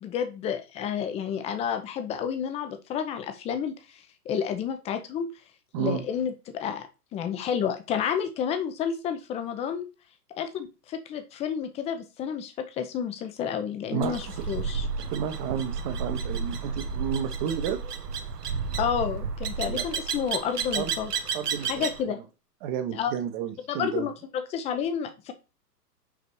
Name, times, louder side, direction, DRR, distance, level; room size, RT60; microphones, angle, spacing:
voice 1, 0.0-4.0 4.2-5.3 5.8-9.9 10.4-14.9 18.8-21.1 21.7-22.2 22.9-23.1 23.7-25.3, left 8 dB, 15° left, 8 dB, 0.7 m, -30 dB
sound 1, 14.0-22.0, right 5 dB, 70° right, 1.3 m, -32 dB
voice 2, 15.1-17.8 19.6-19.8 20.7-20.9 21.3-22.1 22.6-24.1, right 9 dB, 30° right, 9 dB, 1.0 m, -31 dB
5.9 x 5.0 x 4.7 m, 0.30 s
hypercardioid pair, 125°, 48 cm